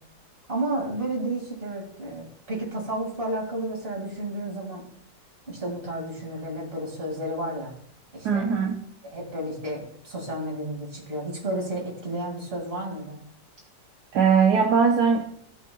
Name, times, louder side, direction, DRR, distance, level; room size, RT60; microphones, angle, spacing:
voice 1, 0.5-4.9 5.5-7.7 8.1-8.5 9.0-13.2, right 1 dB, 35° right, -1 dB, 2.6 m, -32 dB
voice 2, 8.2-8.8 14.1-15.2, right 6 dB, 70° right, 0 dB, 1.4 m, -20 dB
16.5 x 5.7 x 2.3 m, 0.66 s
omnidirectional pair, 1.9 m